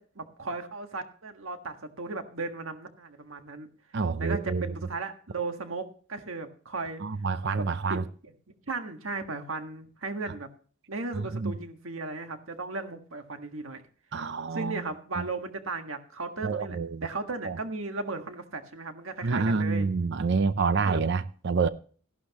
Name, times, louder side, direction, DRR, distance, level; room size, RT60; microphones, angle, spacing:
voice 1, 0.0-3.7 4.2-7.0 7.6-8.3 8.7-10.5 10.9-13.8 14.5-19.9 20.8-21.0, right 3 dB, 75° right, 1.6 m, -36 dB
voice 2, 3.9-4.7 7.0-8.0 11.2-11.5 14.1-14.8 15.2-15.3 16.4-17.1 17.4-17.6 19.2-21.7, right 4 dB, 55° right, 0.5 m, -27 dB
14.0 x 11.5 x 3.0 m
head